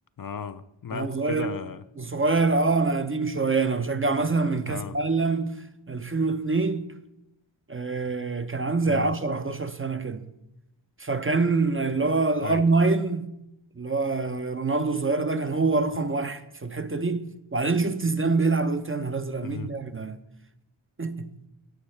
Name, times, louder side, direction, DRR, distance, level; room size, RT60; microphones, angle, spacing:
voice 1, 0.2-1.8 4.7-5.0 8.9-9.1 12.4-12.7 19.4-19.7, left 7 dB, 45° left, 0.4 m, -35 dB
voice 2, 0.9-1.5 2.0-6.9 7.7-10.3 11.0-13.3 13.8-20.2 21.0-21.3, right 3 dB, 25° right, 0.5 m, -25 dB
15.0 x 5.5 x 3.2 m
wide cardioid pair, 60°, 49 cm